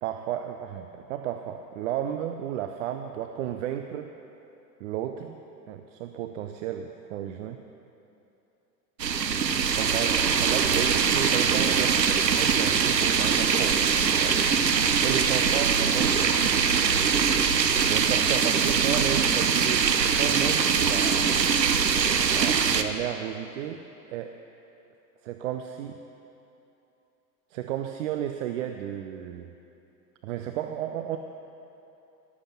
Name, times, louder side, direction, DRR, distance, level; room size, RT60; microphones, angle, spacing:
voice 1, 0.0-4.1 4.8-5.4 5.7-7.6 9.8-14.4 15.0-16.5 17.8-21.4 22.0-22.1 22.3-23.8 24.1-24.4 25.2-26.0 27.5-29.5 30.2-31.2, right 10 dB, 50° right, 6 dB, 0.8 m, -33 dB
sound 1, 9.0-22.8, right 6 dB, 80° right, 0.8 m, -23 dB
14.0 x 12.5 x 5.8 m, 2.9 s
figure-of-eight pair, 85°, 50 cm